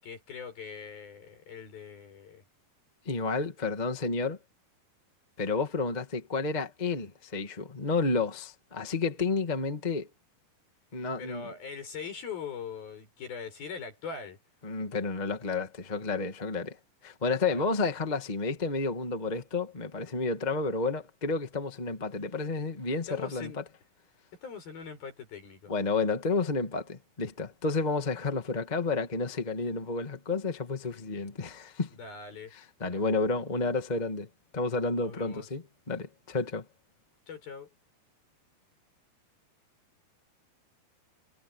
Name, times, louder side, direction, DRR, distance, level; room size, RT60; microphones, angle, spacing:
voice 1, 0.0-2.4 11.2-14.4 17.5-17.6 23.1-23.6 24.4-25.7 32.0-32.5 32.8-33.2 35.0-35.5 37.3-37.7, left 6 dB, 70° left, 8.9 m, -42 dB
voice 2, 3.0-4.4 5.4-10.1 10.9-11.5 14.6-16.8 17.0-23.6 25.7-31.9 32.5-34.3 34.5-36.6, left 3 dB, 20° left, 1.1 m, -31 dB
omnidirectional pair, 4.3 m